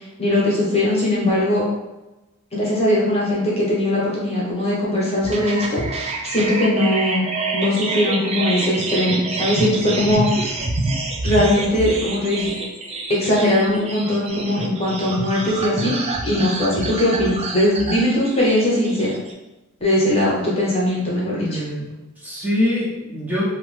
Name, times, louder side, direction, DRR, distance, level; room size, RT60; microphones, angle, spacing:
voice 1, 0.2-1.6 2.5-7.3 7.5-10.2 11.2-12.5 13.1-19.1 19.8-21.6, left 1 dB, 30° left, -6 dB, 0.9 m, -20 dB
sound 1, 5.2-19.3, right 2 dB, 30° right, 0.3 m, -27 dB
voice 2, 21.3-23.5, left 1 dB, 10° right, -9 dB, 0.7 m, -24 dB
2.9 x 2.0 x 3.1 m, 1.0 s
head